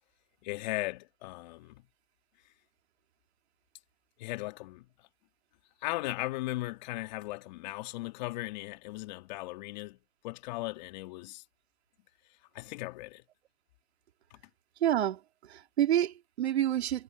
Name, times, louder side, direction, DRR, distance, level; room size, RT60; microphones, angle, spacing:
voice 1, 0.4-1.8 4.2-4.9 5.8-10.0 10.2-11.4 12.5-13.2, left 20 dB, 35° left, 2.9 m, -37 dB
voice 2, 14.8-15.2 15.5-17.0, right 11 dB, 55° right, 2.6 m, -28 dB
hypercardioid pair, 145°, 38 cm